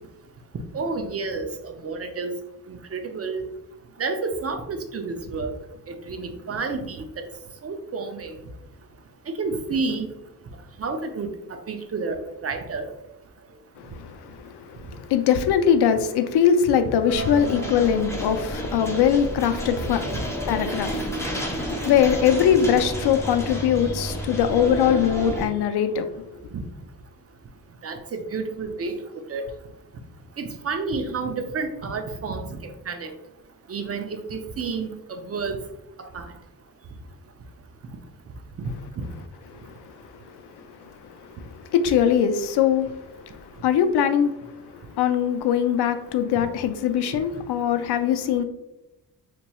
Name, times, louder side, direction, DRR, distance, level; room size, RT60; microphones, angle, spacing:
voice 1, 0.7-2.4 2.7-3.4 4.0-5.5 5.9-7.0 7.6-8.4 9.3-10.1 10.8-11.3 11.7-12.2 12.4-12.9 20.1-20.2 26.5-26.6 27.8-28.9 29.3-29.4 30.4-33.1 33.7-35.6 36.1-36.3 39.0-39.1, right 4 dB, 35° right, 0.5 m, -30 dB
voice 2, 13.8-20.1 20.5-26.1 39.6-43.0 43.2-44.7 44.9-48.4, left 8 dB, 70° left, 0.5 m, -22 dB
sound 1, 17.1-25.5, equal, 5° left, 0.7 m, -30 dB
4.0 x 2.9 x 2.3 m
cardioid pair, 90°, 41 cm